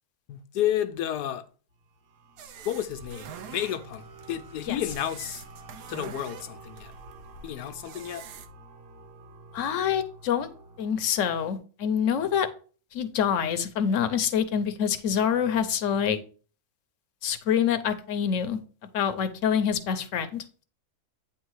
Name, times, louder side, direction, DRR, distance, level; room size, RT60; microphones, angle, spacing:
voice 1, 0.3-1.4 2.6-5.4 5.9-6.9 7.4-8.2, left 11 dB, 90° left, 1.3 m, -31 dB
sound 1, 1.7-11.1, right 3 dB, 65° right, 1.5 m, -50 dB
sound 2, 2.4-8.5, right 6 dB, 85° right, 1.3 m, -45 dB
voice 2, 9.5-10.5 10.8-12.5 12.9-16.2 17.2-18.6 18.9-20.6, left 8 dB, 60° left, 0.9 m, -26 dB
8.9 x 3.6 x 4.6 m
omnidirectional pair, 1.7 m